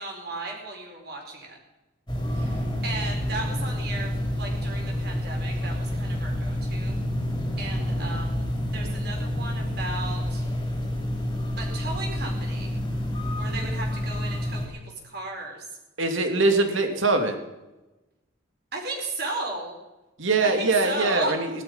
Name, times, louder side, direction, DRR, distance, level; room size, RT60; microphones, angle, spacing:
voice 1, 0.0-1.6 2.3-7.0 7.6-10.4 11.6-12.7 13.4-14.8 15.0-15.7 18.7-19.8 20.4-21.3, right 2 dB, 50° right, 0 dB, 4.6 m, -35 dB
sound 1, 2.1-14.7, left 1 dB, 20° left, 3.1 m, -28 dB
voice 2, 16.0-17.4 20.2-21.5, right 3 dB, 75° right, 6 dB, 2.4 m, -22 dB
18.5 x 12.5 x 5.5 m, 1.0 s
head